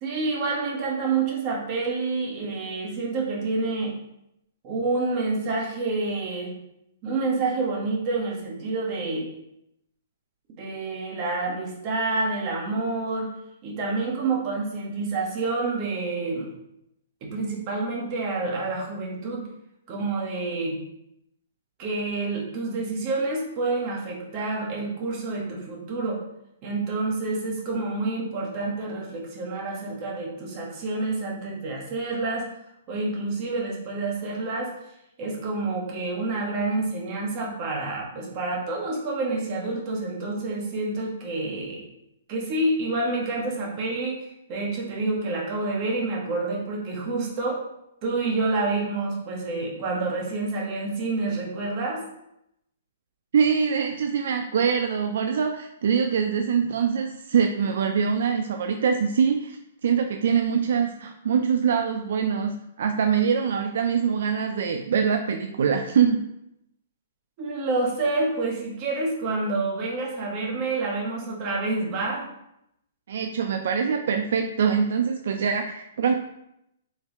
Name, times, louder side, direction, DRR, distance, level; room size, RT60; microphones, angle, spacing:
voice 1, 0.0-3.9 4.6-6.5 7.0-9.3 10.6-13.3 13.6-16.5 17.2-19.4 19.9-20.8 21.8-26.2 26.6-32.4 32.9-34.7 35.2-41.8 42.3-47.6 48.0-52.0 67.4-72.3, right 3 dB, 30° right, -2 dB, 1.3 m, -28 dB
voice 2, 53.3-66.2 73.1-76.1, right 6 dB, 60° right, 5 dB, 0.4 m, -24 dB
4.5 x 3.3 x 3.5 m, 0.80 s
hypercardioid pair, 165°, 0 cm